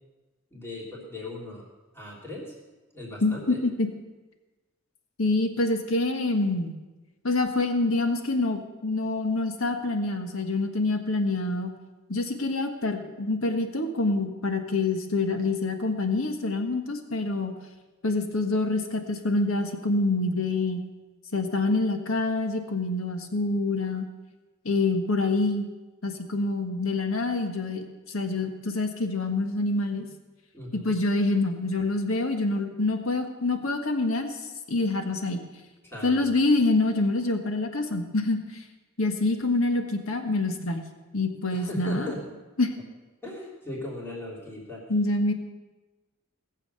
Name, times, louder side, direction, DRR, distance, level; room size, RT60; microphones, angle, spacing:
voice 1, 0.5-1.6 1.9-2.5 2.9-3.6 30.5-30.9 35.8-36.2 41.5-42.2 43.2-44.8, left 1 dB, 10° left, -4 dB, 3.3 m, -38 dB
voice 2, 3.2-3.9 5.2-6.7 7.2-11.7 12.1-17.5 18.0-20.8 21.3-24.1 24.6-25.7 26.0-30.1 30.7-34.4 34.7-35.4 36.0-38.6 39.0-40.8 41.1-42.1 42.6-42.7 44.9-45.3, left 2 dB, 70° left, 6 dB, 1.5 m, -26 dB
18.5 x 7.5 x 6.9 m, 1.2 s
head